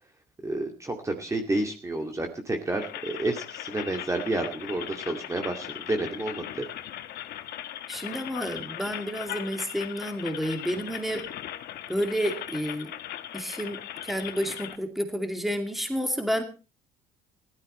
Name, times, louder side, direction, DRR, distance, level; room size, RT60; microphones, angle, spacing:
voice 1, 0.4-6.7, right 2 dB, 20° right, 3 dB, 2.3 m, -30 dB
sound 1, 2.8-14.8, left 12 dB, 70° left, 1.4 m, -39 dB
voice 2, 7.9-11.2 11.9-12.9 13.3-16.4, equal, ahead, 5 dB, 2.6 m, -30 dB
16.0 x 13.0 x 4.3 m, 0.34 s
cardioid pair, 110°, 17 cm